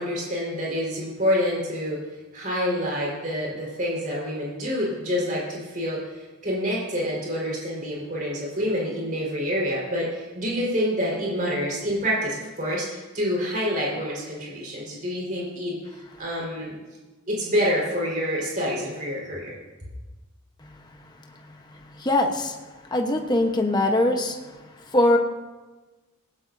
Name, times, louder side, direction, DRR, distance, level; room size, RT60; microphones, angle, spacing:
voice 1, 0.0-2.0 2.3-15.8 16.2-16.7 17.3-19.5, equal, 40° right, -4 dB, 4.5 m, -27 dB
voice 2, 21.2-22.6 22.9-24.6 24.9-25.2, left 1 dB, 20° left, 2 dB, 1.0 m, -23 dB
17.5 x 17.0 x 2.7 m, 1.2 s
head